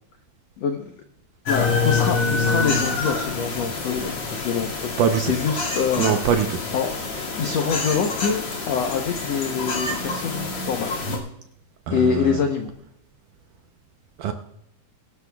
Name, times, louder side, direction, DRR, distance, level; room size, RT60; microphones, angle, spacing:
voice 1, 0.6-0.9 1.5-6.2 6.7-6.9 7.4-10.9 11.9-12.7, left 6 dB, 90° left, 4 dB, 1.4 m, -25 dB
sound 1, 1.5-11.2, left 4 dB, 40° left, 2.7 m, -27 dB
voice 2, 5.0-5.3 6.0-6.6 11.9-12.4 14.2-14.3, right 8 dB, 75° right, 6 dB, 2.0 m, -22 dB
21.5 x 12.0 x 2.3 m, 0.77 s
omnidirectional pair, 4.4 m